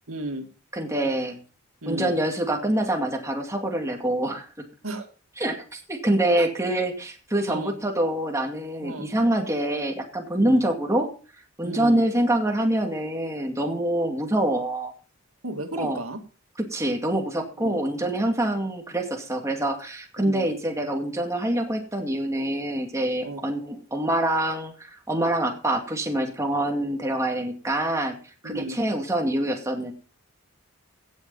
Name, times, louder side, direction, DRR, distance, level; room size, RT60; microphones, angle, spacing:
voice 1, 0.1-0.5 1.8-2.1 4.8-5.1 6.4-6.5 7.5-7.8 8.8-9.1 10.4-10.6 11.6-12.0 15.4-16.2 17.6-17.8 20.2-20.5 23.2-23.4 28.4-28.8, right 1 dB, 90° right, 6 dB, 2.2 m, -34 dB
voice 2, 0.7-1.4 1.9-4.5 5.4-11.1 11.6-14.9 15.8-16.0 16.6-28.2 28.4-29.9, right 1 dB, 15° right, 2 dB, 2.3 m, -25 dB
17.0 x 6.9 x 5.5 m, 0.37 s
head